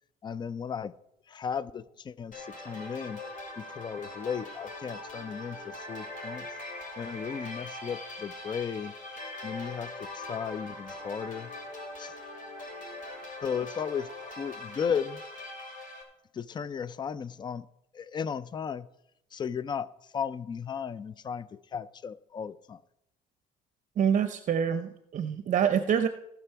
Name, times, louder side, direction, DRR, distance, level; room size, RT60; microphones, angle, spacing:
voice 1, 0.2-0.9 1.3-3.2 3.6-6.5 7.0-8.9 9.4-11.5 12.0-12.1 13.4-14.1 14.4-15.2 16.3-17.7 17.9-18.9 19.3-22.8, left 7 dB, 25° left, 0.4 m, -35 dB
sound 1, 2.3-16.0, left 2 dB, 50° left, 2.6 m, -41 dB
voice 2, 24.0-26.1, right 8 dB, 50° right, 0.6 m, -26 dB
18.0 x 6.1 x 4.5 m
cardioid pair, 110°, 17 cm